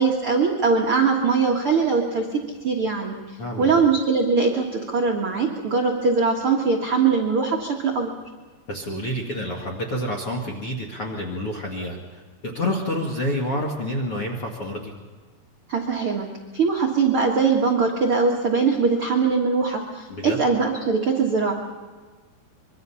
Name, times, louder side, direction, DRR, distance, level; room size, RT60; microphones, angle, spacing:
voice 1, 0.0-3.2 3.6-8.1 15.7-16.3 16.5-21.5, right 4 dB, 60° right, 0 dB, 1.4 m, -21 dB
voice 2, 3.4-3.8 8.7-14.9 20.1-20.4, left 1 dB, 50° left, -1 dB, 1.7 m, -28 dB
25.0 x 23.0 x 5.7 m, 1.4 s
omnidirectional pair, 5.2 m